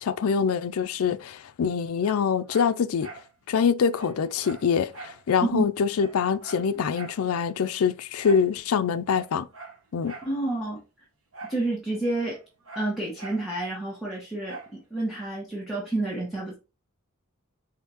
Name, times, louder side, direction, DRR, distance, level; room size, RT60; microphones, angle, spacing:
voice 1, 0.0-3.1 3.5-9.5 9.9-10.1, left 6 dB, 75° left, 0.4 m, -25 dB
Dog, 2.0-3.3 3.6-3.7 3.9-5.2 5.6-5.7 5.9-7.2 8.2-8.5 9.0-10.3 11.3-11.7 11.9-13.5 14.4-14.8 15.3-15.4, right 3 dB, 70° right, 1.1 m, -44 dB
voice 2, 5.4-5.7 10.2-10.8 11.4-12.4 12.7-16.6, right 2 dB, ahead, 1.2 m, -29 dB
5.0 x 3.7 x 2.9 m
head